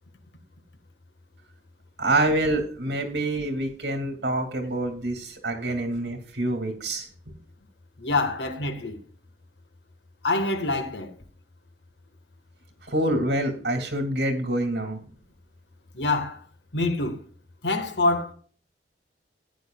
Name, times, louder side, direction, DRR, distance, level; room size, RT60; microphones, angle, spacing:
voice 1, 2.0-7.1 12.9-15.0, right 1 dB, 75° right, 2.3 m, -26 dB
voice 2, 8.0-9.0 10.2-11.1 15.9-16.4 16.7-17.2 17.6-18.3, left 2 dB, 85° left, 1.5 m, -25 dB
14.0 x 9.8 x 2.3 m
head